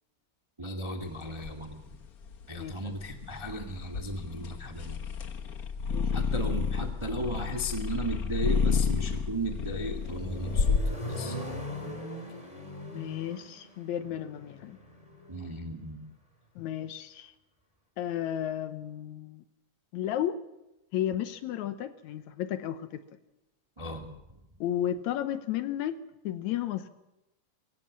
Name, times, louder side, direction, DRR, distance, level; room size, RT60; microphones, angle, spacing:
voice 1, 0.6-1.8 2.5-5.0 6.1-11.6 15.3-16.0 23.8-24.1, right 1 dB, 15° right, 1.0 m, -36 dB
sound 1, 1.0-10.8, left 5 dB, 85° left, 0.8 m, -31 dB
voice 2, 2.6-2.9 5.9-6.3 12.9-14.8 16.6-17.3 18.0-19.4 19.9-20.4 20.9-23.0 24.6-26.0 26.2-26.9, left 11 dB, 70° left, 2.1 m, -33 dB
Accelerating revving vroom, 9.5-15.5, equal, 10° left, 3.6 m, -40 dB
22.5 x 16.5 x 7.3 m
omnidirectional pair, 3.6 m